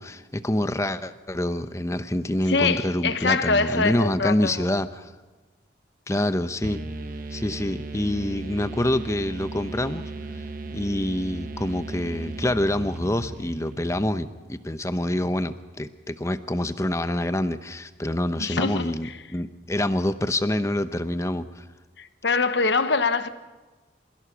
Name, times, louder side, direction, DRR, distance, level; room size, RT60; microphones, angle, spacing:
voice 1, 0.0-5.1 6.1-6.8 7.3-10.1 10.7-21.6, left 1 dB, 15° left, 0.7 m, -26 dB
voice 2, 2.5-4.7 18.4-19.2 22.0-23.3, left 4 dB, 65° left, 1.1 m, -24 dB
sound 1, 6.6-14.3, right 2 dB, 45° right, 1.2 m, -36 dB
28.5 x 16.0 x 6.1 m
head